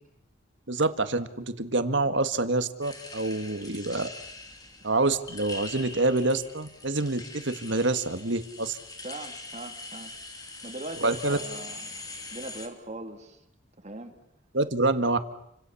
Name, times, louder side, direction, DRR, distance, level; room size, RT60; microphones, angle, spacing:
voice 1, 0.7-4.1 4.8-8.8 11.0-11.4 14.5-15.2, right 2 dB, 60° right, 10 dB, 1.8 m, -26 dB
sound 1, 2.8-12.7, left 3 dB, 20° left, 2.9 m, -43 dB
voice 2, 9.0-10.1 10.4-11.9 12.3-13.4 13.8-14.1, right 2 dB, 35° right, 6 dB, 2.4 m, -40 dB
29.5 x 26.0 x 7.1 m, 0.79 s
head